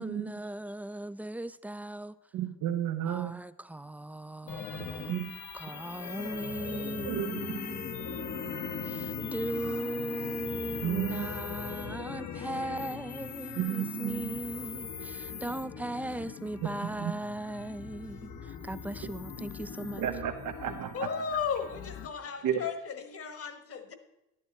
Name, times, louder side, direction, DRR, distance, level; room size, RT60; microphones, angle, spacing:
voice 1, 0.0-2.1 3.0-5.1 5.5-7.8 8.8-20.1, right 1 dB, 5° right, 0.3 m, -38 dB
voice 2, 2.3-3.4 4.7-5.3 7.0-7.6 10.8-11.3 13.6-14.4 16.6-16.7 17.0-17.1 20.0-21.0 22.4-22.6, right 10 dB, 80° right, 0.9 m, -32 dB
sound 1, 4.5-22.1, left 6 dB, 70° left, 1.1 m, -40 dB
voice 3, 20.9-23.9, left 7 dB, 50° left, 1.4 m, -35 dB
11.5 x 10.0 x 4.2 m
cardioid pair, 90°, 30 cm